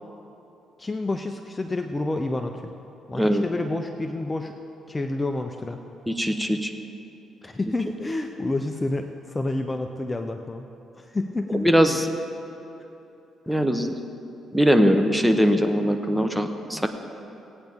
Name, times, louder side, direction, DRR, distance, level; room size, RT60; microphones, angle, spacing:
voice 1, 0.8-2.7 3.1-4.5 4.9-5.8 7.4-10.7 11.0-12.0 16.7-16.9, left 2 dB, 20° left, 5 dB, 0.6 m, -29 dB
voice 2, 3.1-3.4 6.1-6.7 11.5-12.1 13.5-13.9 14.5-16.9, equal, 5° right, 6 dB, 0.9 m, -21 dB
18.0 x 9.0 x 3.6 m, 3.0 s
cardioid pair, 90°, 0 cm